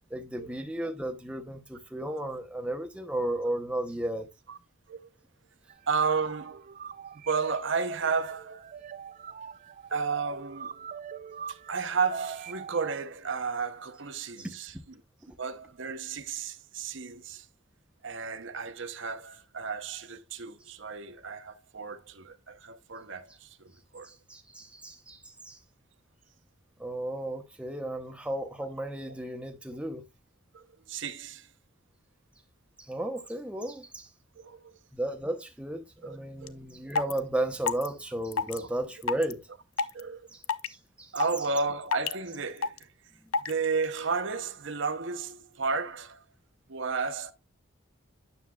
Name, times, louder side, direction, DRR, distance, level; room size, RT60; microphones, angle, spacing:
voice 1, 0.1-4.3 14.4-14.5 24.0-25.6 26.8-30.0 32.8-34.1 34.9-39.5 40.3-41.1 43.2-43.3, right 1 dB, 5° right, 0.7 m, -34 dB
sound 1, 5.7-13.0, right 6 dB, 40° right, 0.4 m, -43 dB
voice 2, 5.9-6.7 7.3-8.7 9.9-10.8 11.5-14.7 15.4-17.5 18.0-24.1 30.5-31.5 34.4-34.7 36.0-36.5 38.6-38.7 39.9-40.3 41.1-42.9 43.4-46.2 46.7-47.3, right 5 dB, 60° right, 0.7 m, -33 dB
sound 2, 36.5-36.6 36.9-37.2 37.7-37.9 38.3-38.6 39.0-39.3 39.8-40.0 40.4-40.7 41.2-41.4 41.9-42.1 42.6-42.8 43.3-43.5, left 5 dB, 80° left, 0.5 m, -27 dB
9.4 x 7.1 x 2.2 m
head